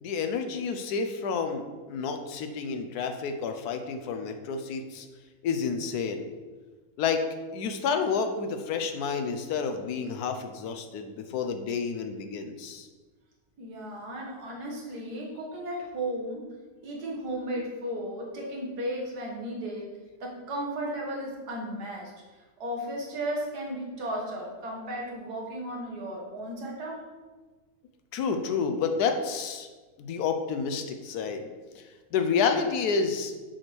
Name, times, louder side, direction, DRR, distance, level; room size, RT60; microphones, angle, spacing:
voice 1, 0.0-5.1 5.4-6.3 7.0-7.3 7.5-12.9 28.1-29.7 30.0-31.5 31.8-31.9 32.1-33.4, left 5 dB, 80° left, 7 dB, 1.1 m, -29 dB
voice 2, 13.6-16.5 16.8-19.9 20.2-22.1 22.6-27.0, right 1 dB, 75° right, -2 dB, 1.9 m, -35 dB
6.3 x 6.0 x 3.2 m, 1.3 s
omnidirectional pair, 1.7 m